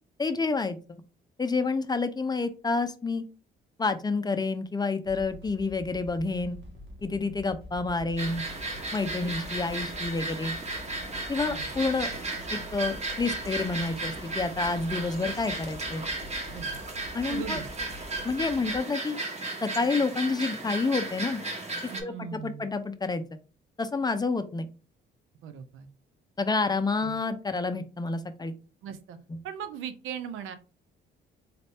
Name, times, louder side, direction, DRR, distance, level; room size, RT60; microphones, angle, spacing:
voice 1, 0.2-0.8 1.4-3.2 3.8-6.6 7.0-8.4 8.9-10.5 11.3-12.1 12.5-16.0 17.1-17.6 18.2-19.2 19.6-21.4 22.0-23.4 23.8-24.7 26.4-28.5, left 3 dB, 20° left, 9 dB, 0.5 m, -29 dB
sound 1, 5.0-18.8, left 1 dB, 70° right, 1.7 m, -46 dB
sound 2, 8.2-22.0, right 2 dB, 35° right, 1.2 m, -35 dB
voice 2, 17.3-17.7 21.9-22.7 25.4-25.9 27.0-27.2 28.8-29.2 29.4-30.5, right 8 dB, 90° right, 10 dB, 0.6 m, -38 dB
4.1 x 2.6 x 3.4 m, 0.34 s
cardioid pair, 90°, 20 cm